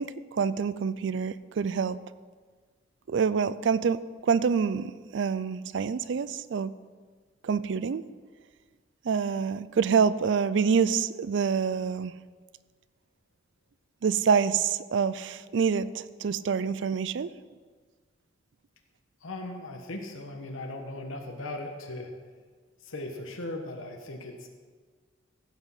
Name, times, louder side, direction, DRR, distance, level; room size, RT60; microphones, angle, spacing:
voice 1, 0.0-2.0 3.1-6.7 7.4-8.0 9.0-12.1 14.0-17.3, right 6 dB, 65° right, 16 dB, 0.4 m, -26 dB
voice 2, 19.2-22.1 22.8-24.5, left 2 dB, 90° left, 3 dB, 1.2 m, -38 dB
16.0 x 6.3 x 5.7 m, 1.5 s
head